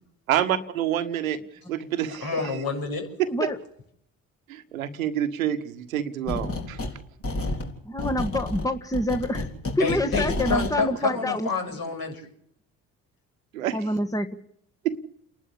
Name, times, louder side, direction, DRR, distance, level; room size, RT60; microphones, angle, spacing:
voice 1, 0.3-1.4 1.7-2.6 3.2-3.3 4.5-6.8 13.5-13.8 14.8-15.0, right 11 dB, 90° right, 10 dB, 1.3 m, -27 dB
voice 2, 2.2-3.1 9.8-12.3, left 4 dB, 60° left, 3 dB, 7.2 m, -28 dB
sound 1, 6.3-7.0 7.2-10.8, left 2 dB, 35° left, 3.9 m, -30 dB
voice 3, 7.8-9.5 9.7-11.5 13.7-14.3, left 1 dB, 10° left, 7 dB, 1.6 m, -27 dB
29.5 x 12.0 x 8.3 m, 0.70 s
hypercardioid pair, 55°, 40 cm